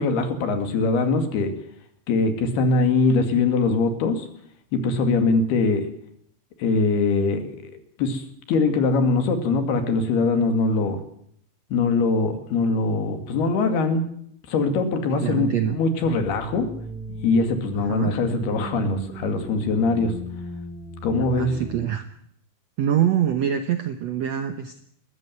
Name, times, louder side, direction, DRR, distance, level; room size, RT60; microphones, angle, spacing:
voice 1, 0.0-1.5 2.1-4.3 4.7-5.9 6.6-7.7 8.0-11.0 11.7-14.1 14.5-16.7 17.2-20.1 21.0-21.6, left 3 dB, 80° left, 8 dB, 4.3 m, -22 dB
voice 2, 15.1-15.8 17.8-18.1 21.3-22.0 22.8-24.8, right 10 dB, 75° right, 9 dB, 1.5 m, -24 dB
sound 1, 16.0-21.9, equal, ahead, 2.1 m, -37 dB
21.5 x 14.5 x 9.4 m, 0.68 s
omnidirectional pair, 4.5 m